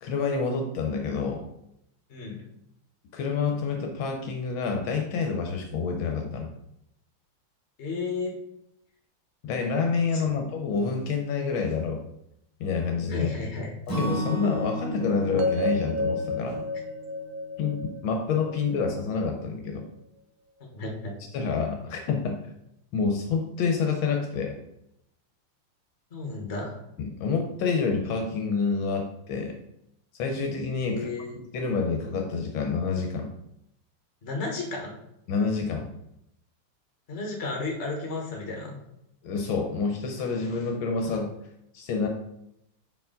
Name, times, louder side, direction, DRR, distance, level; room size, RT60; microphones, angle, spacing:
voice 1, 0.0-1.4 3.1-6.5 9.4-12.0 12.6-13.4 13.9-16.7 17.6-19.9 21.3-22.4 22.9-24.6 27.0-29.6 30.2-31.1 31.4-33.3 35.3-35.9 39.2-41.3 41.7-42.1, left 5 dB, 75° left, 3 dB, 1.5 m, -28 dB
voice 2, 7.8-8.3 10.1-10.3 13.1-13.7 20.7-21.1 26.1-26.8 30.8-31.3 34.2-34.9 37.1-38.8, left 3 dB, 35° left, 0 dB, 1.4 m, -33 dB
Acoustic guitar / Strum, 13.9-17.8, equal, 15° left, 1.0 m, -34 dB
sound 1, 15.4-19.5, left 2 dB, 75° right, 1.5 m, -31 dB
5.4 x 4.7 x 3.8 m, 0.81 s
omnidirectional pair, 2.3 m